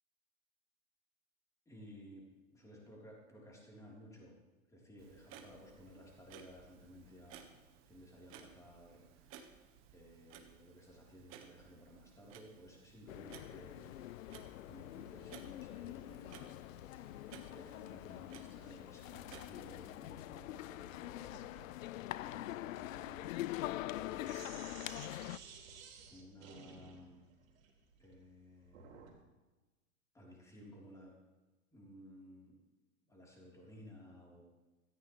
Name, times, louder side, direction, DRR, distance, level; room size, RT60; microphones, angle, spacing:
voice 1, 1.7-4.4 4.7-7.5 7.9-9.6 9.9-14.0 14.2-16.5 17.0-21.3 21.7-24.7 25.1-25.7 26.1-27.3 28.0-29.1 30.1-31.2 31.7-32.6 33.1-34.4, equal, 5° left, -3 dB, 3.6 m, -57 dB
Clock, 5.0-20.1, right 8 dB, 30° right, 1.4 m, -59 dB
sound 1, 13.1-25.4, left 15 dB, 70° left, 0.5 m, -44 dB
Sink (filling or washing), 21.2-29.2, right 6 dB, 70° right, 3.4 m, -56 dB
17.5 x 14.5 x 3.2 m, 1.2 s
hypercardioid pair, 140°, 42 cm